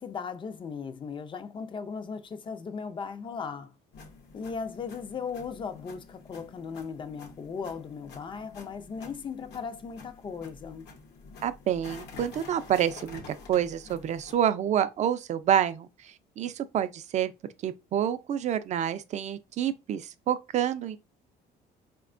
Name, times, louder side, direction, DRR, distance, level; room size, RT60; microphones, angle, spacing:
voice 1, 0.0-3.7 4.3-10.8, left 5 dB, 30° left, 0.4 m, -37 dB
sound 1, 3.9-14.3, left 4 dB, 80° left, 0.8 m, -49 dB
voice 2, 11.4-17.3 17.6-21.0, right 10 dB, 45° right, 0.4 m, -28 dB
4.1 x 2.2 x 2.5 m
cardioid pair, 110°, 17 cm